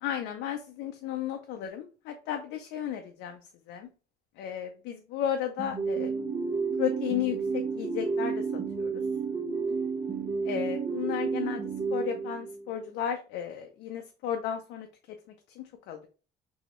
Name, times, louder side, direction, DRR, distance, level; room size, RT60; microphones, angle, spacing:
voice 1, 0.0-3.4 3.7-3.9 4.4-6.1 6.8-8.4 8.8-8.9 10.4-11.6 11.9-14.9 15.6-16.1, left 10 dB, 85° left, 5 dB, 0.4 m, -34 dB
sound 1, 5.6-12.8, right 5 dB, 40° right, 0.8 m, -31 dB
3.0 x 2.7 x 2.9 m, 0.36 s
cardioid pair, 110°, 17 cm